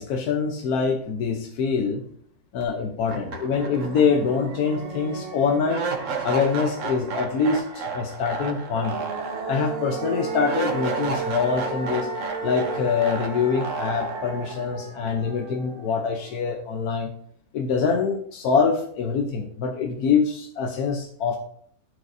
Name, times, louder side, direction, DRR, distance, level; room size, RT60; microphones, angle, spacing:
voice 1, 0.0-2.0 2.5-5.9 6.2-9.0 9.5-12.1 12.4-17.1 17.5-21.4, left 5 dB, 85° left, 3 dB, 1.3 m, -24 dB
sound 1, 2.6-2.7 3.1-16.1, right 4 dB, 60° right, 1.3 m, -31 dB
12.5 x 5.1 x 2.6 m, 0.62 s
omnidirectional pair, 1.6 m